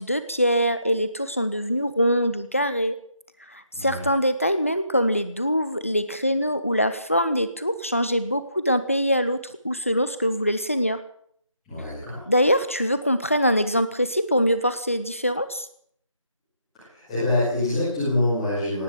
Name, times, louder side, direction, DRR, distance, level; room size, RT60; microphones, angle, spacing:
voice 1, 0.0-3.0 3.5-11.0 12.3-15.7, equal, 25° left, 12 dB, 0.8 m, -23 dB
voice 2, 3.7-4.1 11.6-12.2 16.7-18.8, left 2 dB, ahead, -15 dB, 2.4 m, -25 dB
18.5 x 9.8 x 7.7 m, 0.65 s
figure-of-eight pair, 175°, 17 cm